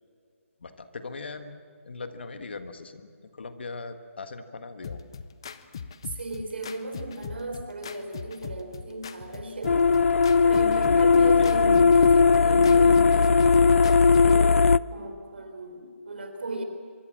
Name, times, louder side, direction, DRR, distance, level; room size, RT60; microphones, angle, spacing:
voice 1, 0.6-1.6 1.9-3.1 3.3-5.0 11.4-11.5, left 3 dB, 50° left, 9 dB, 1.6 m, -39 dB
sound 1, 4.8-14.4, left 6 dB, 20° left, 0.6 m, -40 dB
voice 2, 6.0-9.8 10.4-13.9 14.2-16.6, right 1 dB, 50° right, 6 dB, 4.2 m, -36 dB
sound 2, 9.6-14.8, left 5 dB, 70° left, 0.5 m, -18 dB
25.0 x 23.0 x 7.5 m, 2.2 s
hypercardioid pair, 180°, 8 cm